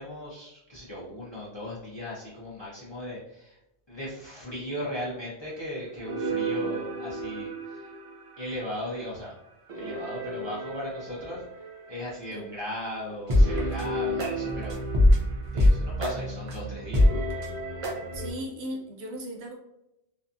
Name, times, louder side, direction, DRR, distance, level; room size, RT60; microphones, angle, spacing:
voice 1, 0.0-3.6 3.9-7.9 8.4-9.3 9.7-14.8 15.5-17.1, left 1 dB, 30° left, -7 dB, 0.5 m, -37 dB
sound 1, 6.1-8.8 9.7-12.7 13.0-13.1 13.3-18.3, left 1 dB, 50° right, 0.4 m, -27 dB
voice 2, 18.1-19.5, equal, 70° right, 0 dB, 0.8 m, -37 dB
2.5 x 2.3 x 2.5 m, 0.86 s
omnidirectional pair, 1.2 m